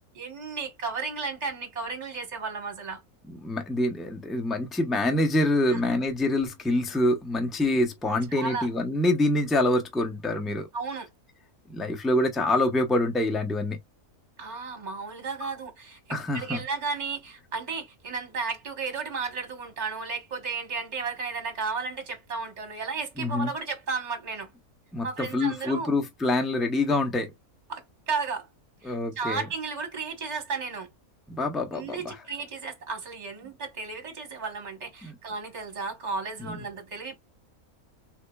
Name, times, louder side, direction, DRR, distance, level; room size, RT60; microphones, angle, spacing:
voice 1, 0.1-3.0 5.7-5.8 8.3-8.7 10.7-11.1 14.4-24.5 25.0-25.9 27.7-28.5 28.8-30.9 31.7-37.2, right 4 dB, 30° right, 1.1 m, -34 dB
voice 2, 3.3-10.7 11.7-13.8 15.4-15.5 16.1-16.6 23.2-23.5 24.9-27.3 28.8-29.5 31.3-32.2 35.0-35.1 36.4-36.6, left 1 dB, ahead, 0.4 m, -26 dB
3.6 x 3.3 x 2.3 m
omnidirectional pair, 1.6 m